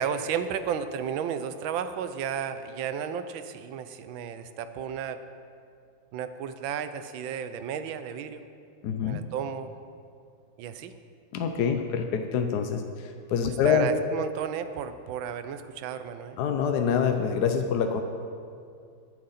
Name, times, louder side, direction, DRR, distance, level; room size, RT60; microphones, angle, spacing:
voice 1, 0.0-5.2 6.1-8.4 9.0-9.7 10.6-10.9 13.4-16.4, right 8 dB, 80° right, 10 dB, 1.4 m, -33 dB
voice 2, 8.8-9.2 11.3-13.9 16.4-18.0, left 7 dB, 65° left, 5 dB, 1.1 m, -26 dB
22.5 x 7.7 x 4.2 m, 2.4 s
omnidirectional pair, 2.2 m